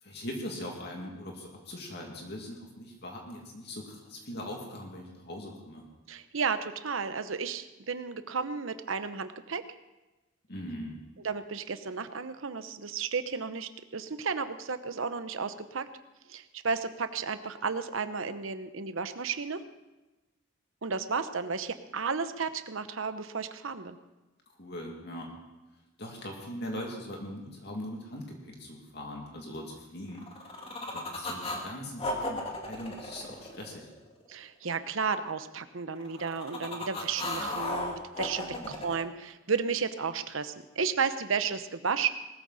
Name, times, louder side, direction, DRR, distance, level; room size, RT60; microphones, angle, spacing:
voice 1, 0.0-5.9 10.5-11.0 24.6-25.3 26.0-30.3 30.9-33.9 38.4-38.7, left 1 dB, 50° left, 0 dB, 2.4 m, -41 dB
voice 2, 6.1-9.6 11.2-15.9 16.3-19.6 20.8-24.0 34.3-42.1, right 5 dB, 70° right, 10 dB, 0.9 m, -33 dB
sound 1, 30.1-31.6 32.0-34.2 36.0-39.0, left 1 dB, 25° left, 2.1 m, -35 dB
19.5 x 13.5 x 4.2 m, 1.1 s
head